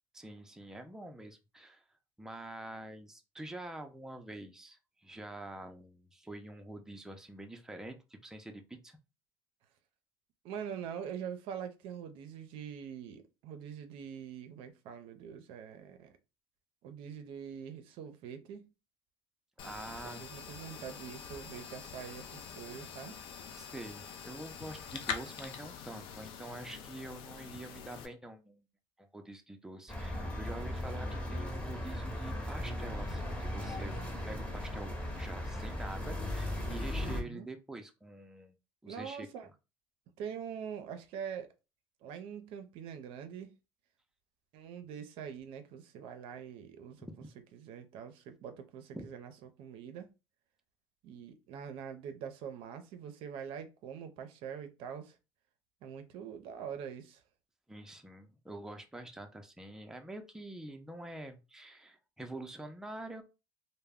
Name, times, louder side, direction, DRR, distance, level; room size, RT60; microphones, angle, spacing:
voice 1, 0.1-1.8 2.2-9.0 19.6-20.2 23.5-28.6 29.0-38.5 38.8-39.3 47.0-47.3 48.9-49.1 57.7-63.2, right 1 dB, 5° right, 0.5 m, -46 dB
voice 2, 10.4-16.1 16.8-18.7 20.2-23.2 30.6-30.9 37.0-37.5 38.9-39.5 40.2-41.5 42.0-43.5 44.5-47.1 47.5-50.1 51.0-55.2 55.8-57.2, right 8 dB, 70° right, 0.5 m, -44 dB
sound 1, 19.6-28.1, left 7 dB, 65° left, 0.4 m, -45 dB
sound 2, 29.9-37.2, left 1 dB, 15° left, 0.9 m, -37 dB
2.1 x 2.0 x 3.4 m
supercardioid pair, 90°, 9 cm